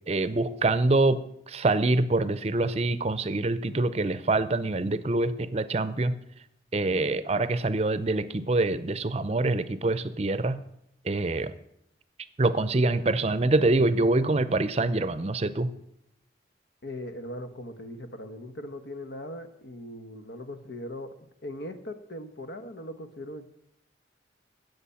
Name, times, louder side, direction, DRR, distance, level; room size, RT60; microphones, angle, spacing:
voice 1, 0.1-6.2 6.7-10.6 11.0-11.5 12.4-15.7, right 2 dB, 35° right, 14 dB, 0.6 m, -25 dB
voice 2, 16.8-23.4, left 1 dB, 75° left, 9 dB, 1.1 m, -40 dB
17.0 x 6.8 x 5.7 m, 0.78 s
head